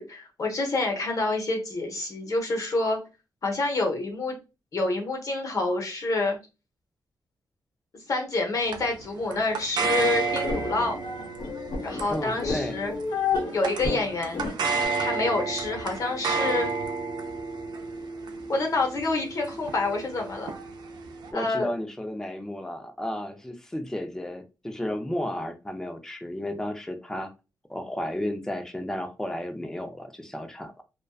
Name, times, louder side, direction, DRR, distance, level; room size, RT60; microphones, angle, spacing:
voice 1, 0.0-3.0 3.4-4.4 4.7-6.4 8.1-11.0 11.8-12.9 13.5-14.5 15.0-16.7 18.5-20.5 21.3-21.7, left 2 dB, 50° left, 2 dB, 0.8 m, -27 dB
sound 1, 8.7-21.3, right 4 dB, 75° right, 0.4 m, -32 dB
sound 2, 9.8-14.9, left 4 dB, 80° left, 0.7 m, -32 dB
voice 2, 12.1-12.8 21.3-27.3 27.7-30.8, left 1 dB, 5° left, 6 dB, 0.4 m, -33 dB
2.5 x 2.2 x 2.3 m, 0.29 s
cardioid pair, 100°, 7 cm